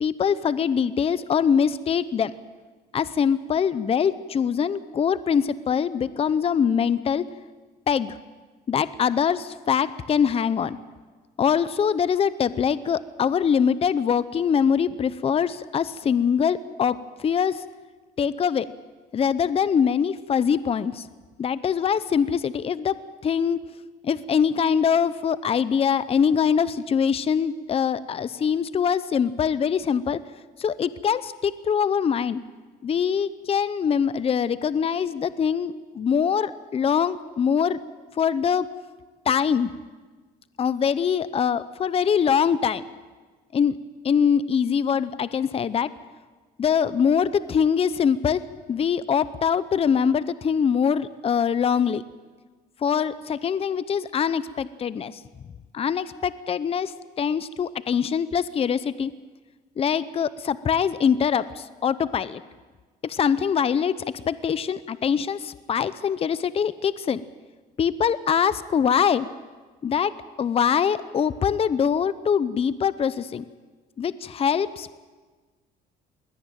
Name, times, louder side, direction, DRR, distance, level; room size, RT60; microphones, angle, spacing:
voice 1, 0.0-2.3 2.9-7.3 7.9-8.2 8.7-10.8 11.4-17.6 18.2-18.7 19.1-21.1 21.4-23.0 23.2-23.6 24.0-30.2 30.6-32.4 32.8-37.8 38.2-38.7 39.3-39.7 40.6-42.8 43.5-43.8 44.0-45.9 46.6-48.4 48.7-52.0 52.8-55.2 55.7-59.1 59.8-62.4 63.0-63.9 64.3-67.2 67.8-69.3 69.8-70.1 70.4-73.4 74.0-75.0, left 7 dB, 35° left, 16 dB, 0.7 m, -23 dB
21.0 x 17.5 x 9.1 m, 1.3 s
cardioid pair, 110°, 17 cm